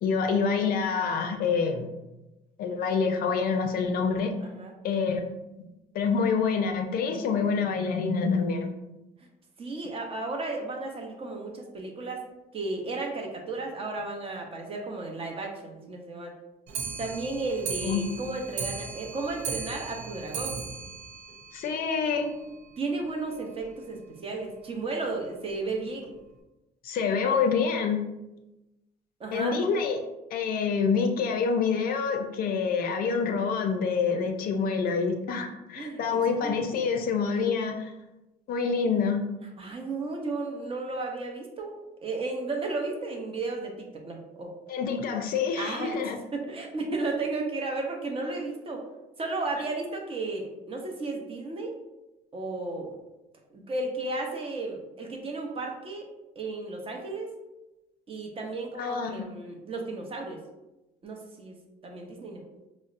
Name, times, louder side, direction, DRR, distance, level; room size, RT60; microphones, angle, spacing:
voice 1, 0.0-1.9 2.6-4.3 4.8-5.3 5.6-5.7 5.9-8.7 17.8-18.0 21.5-22.3 26.8-28.0 29.3-30.0 30.3-37.9 38.5-39.2 44.7-46.2 58.8-59.3, left 5 dB, 60° left, 5 dB, 0.4 m, -27 dB
voice 2, 9.6-12.2 12.5-16.3 17.0-20.7 22.8-26.2 29.2-29.5 35.8-36.6 39.6-44.5 45.6-48.8 49.2-51.7 52.3-52.9 53.5-56.1 56.4-57.3 58.1-60.4 61.0-61.6 61.8-62.4, right 3 dB, 35° right, 1 dB, 0.6 m, -34 dB
Clock, 16.7-22.2 22.5-22.6 22.9-23.0 23.3-23.4 23.7-23.8 24.5-24.6 25.3-25.4 26.0-26.1, right 5 dB, 85° right, 0.5 m, -37 dB
4.0 x 2.0 x 2.4 m, 1.0 s
cardioid pair, 110°, 17 cm